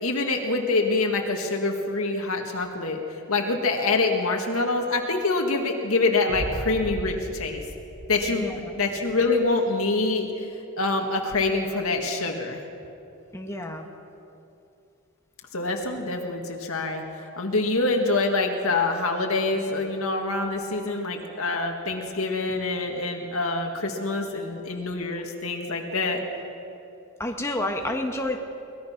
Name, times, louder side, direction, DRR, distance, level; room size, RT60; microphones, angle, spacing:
voice 1, 0.0-7.6 8.1-10.3 10.8-12.6 15.5-17.0 17.4-26.2, left 3 dB, 75° left, 2 dB, 1.9 m, -25 dB
Boom, 6.3-9.3, right 1 dB, 45° right, 1.1 m, -37 dB
voice 2, 8.3-8.7 13.3-13.8 27.2-28.4, left 1 dB, 10° left, 2 dB, 1.4 m, -29 dB
23.5 x 19.5 x 5.9 m, 2.7 s
head